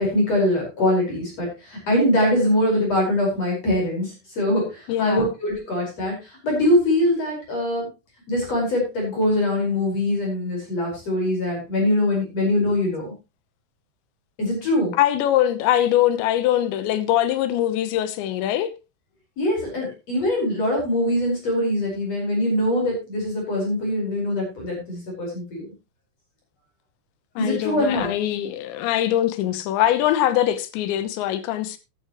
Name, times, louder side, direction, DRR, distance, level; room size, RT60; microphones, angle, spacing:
voice 1, 0.0-7.9 8.3-13.1 14.4-14.9 19.4-25.7 27.4-28.1, left 1 dB, 35° left, 5.7 m, -23 dB
voice 2, 4.9-5.3 15.0-18.7 27.4-31.8, left 12 dB, 80° left, 3.1 m, -22 dB
13.5 x 11.5 x 3.0 m
omnidirectional pair, 5.4 m